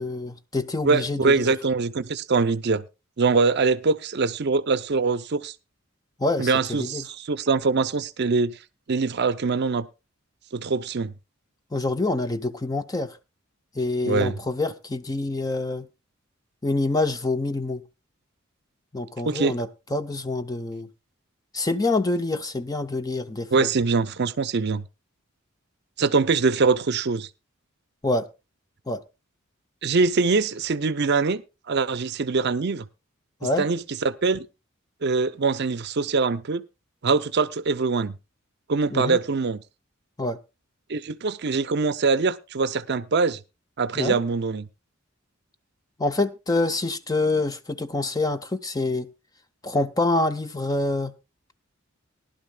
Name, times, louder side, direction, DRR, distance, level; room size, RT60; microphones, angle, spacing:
voice 1, 0.0-1.5 6.2-7.1 11.7-13.2 13.7-15.9 16.6-17.8 18.9-20.9 21.5-23.7 28.0-28.3 28.9-29.0 33.4-33.7 38.9-39.2 40.2-40.4 43.9-44.2 46.0-49.1 49.6-51.1, left 2 dB, 20° left, 0.6 m, -26 dB
voice 2, 0.8-2.8 3.2-5.5 6.4-8.5 8.9-9.9 10.5-11.1 14.0-14.3 19.3-19.5 23.5-24.8 26.0-27.3 29.8-31.4 31.7-32.8 33.6-34.5 35.0-36.6 37.0-38.1 38.7-39.6 40.9-43.4 43.8-44.7, right 4 dB, 55° right, 0.6 m, -23 dB
19.0 x 11.5 x 2.2 m
head